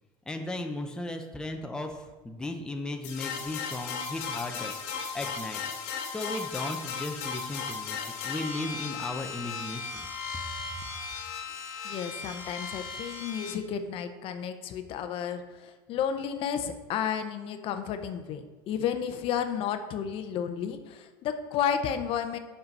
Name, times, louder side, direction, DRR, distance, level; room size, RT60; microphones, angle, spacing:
voice 1, 0.3-4.8 5.1-5.6 6.1-8.0 8.2-10.1, left 2 dB, 5° left, 4 dB, 0.6 m, -36 dB
sound 1, 3.0-13.5, left 5 dB, 65° left, 1.3 m, -36 dB
voice 2, 11.8-22.4, left 8 dB, 50° left, 9 dB, 0.6 m, -32 dB
5.6 x 5.5 x 5.2 m, 1.3 s
supercardioid pair, 125°, 12 cm